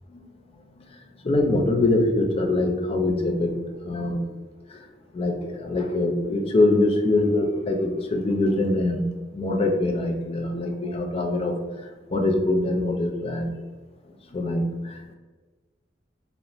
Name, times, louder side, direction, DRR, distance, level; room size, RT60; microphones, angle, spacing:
voice 1, 1.2-3.6 3.8-4.3 4.7-4.8 5.1-9.1 9.3-11.5 12.1-13.5 14.3-15.1, left 2 dB, 30° left, 2 dB, 0.4 m, -23 dB
2.8 x 2.1 x 2.6 m, 1.3 s
head